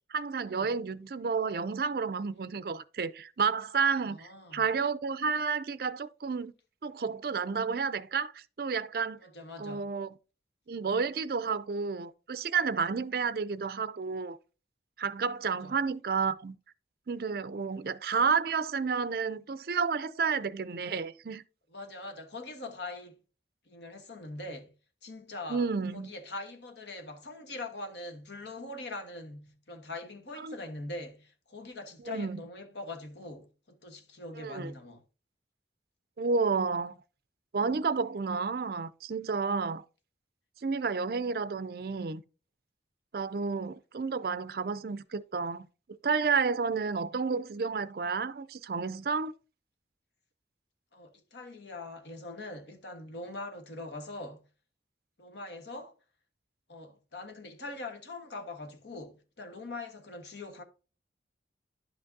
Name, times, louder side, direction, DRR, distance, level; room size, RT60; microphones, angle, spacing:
voice 1, 0.1-6.5 6.8-9.2 9.6-10.1 10.7-14.4 15.0-16.6 17.1-21.4 25.5-26.1 30.4-30.6 32.1-32.4 34.4-34.7 36.2-36.9 37.5-39.8 40.6-42.2 43.1-45.7 46.0-49.3, right 5 dB, 55° right, 0.4 m, -31 dB
voice 2, 4.0-4.7 9.2-9.8 15.5-15.7 21.7-23.2 23.7-24.7 25.0-25.7 25.9-35.0 50.9-54.4 55.2-55.9 56.7-60.6, left 2 dB, 75° left, 1.3 m, -42 dB
11.0 x 6.0 x 2.7 m
head